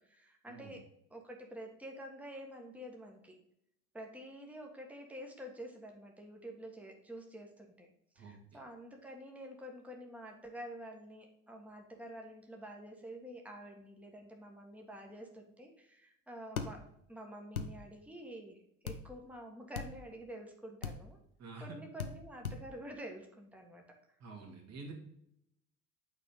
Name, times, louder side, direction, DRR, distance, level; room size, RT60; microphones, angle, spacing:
voice 1, 0.0-3.4 3.9-7.9 8.1-21.2 21.6-23.8, equal, 5° right, 1 dB, 1.5 m, -48 dB
sound 1, 16.6-16.7 17.5-17.7 18.9-19.0 19.7-19.9 20.8-21.0 22.0-22.1 22.4-22.6, left 5 dB, 85° left, 0.7 m, -37 dB
voice 2, 24.2-24.9, right 3 dB, 35° right, 1 dB, 2.3 m, -48 dB
8.8 x 4.2 x 5.3 m, 0.75 s
figure-of-eight pair, 65°, 42 cm